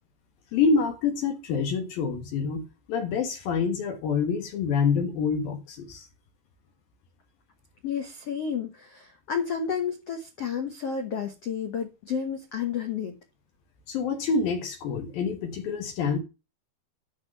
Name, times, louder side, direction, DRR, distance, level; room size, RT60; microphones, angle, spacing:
voice 1, 0.5-6.1 13.9-16.2, left 5 dB, 65° left, 2.8 m, -27 dB
voice 2, 7.8-13.1, left 7 dB, 85° left, 1.3 m, -31 dB
12.5 x 4.7 x 6.6 m
omnidirectional pair, 5.1 m